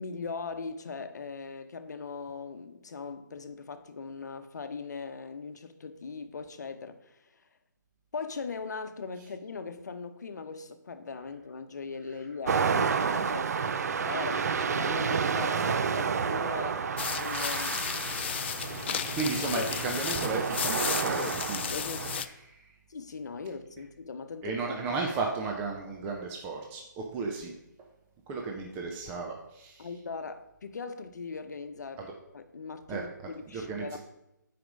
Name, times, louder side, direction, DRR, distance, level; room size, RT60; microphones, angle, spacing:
voice 1, 0.0-7.4 8.1-18.1 19.5-19.7 22.9-24.8 29.8-32.1 32.3-34.0, left 4 dB, 60° left, 1.0 m, -40 dB
sound 1, 12.5-22.2, right 6 dB, 55° right, 0.6 m, -30 dB
sound 2, 17.0-22.2, left 8 dB, 35° left, 0.4 m, -34 dB
voice 2, 19.1-21.8 22.1-22.7 24.4-27.5 28.3-29.9 32.9-33.0 33.5-34.0, right 4 dB, 15° right, 0.9 m, -34 dB
9.2 x 5.1 x 5.2 m
figure-of-eight pair, 145°, 11 cm